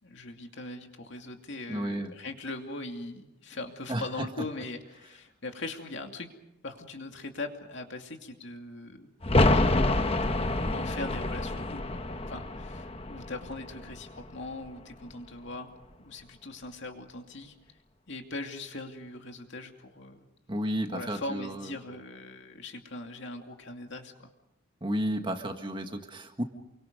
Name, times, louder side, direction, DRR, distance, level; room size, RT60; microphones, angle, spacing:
voice 1, 0.0-6.3 6.6-9.1 9.3-9.7 10.7-12.0 12.3-15.7 16.0-17.5 18.1-20.2 20.9-24.3, left 2 dB, 55° left, 4 dB, 2.6 m, -40 dB
voice 2, 1.7-2.1 3.9-4.3 20.5-21.7 24.8-26.4, right 1 dB, 25° right, 5 dB, 1.7 m, -32 dB
sound 1, 9.2-14.8 15.1-15.2, left 2 dB, 25° left, 1.1 m, -28 dB
29.0 x 24.0 x 5.4 m, 0.90 s
head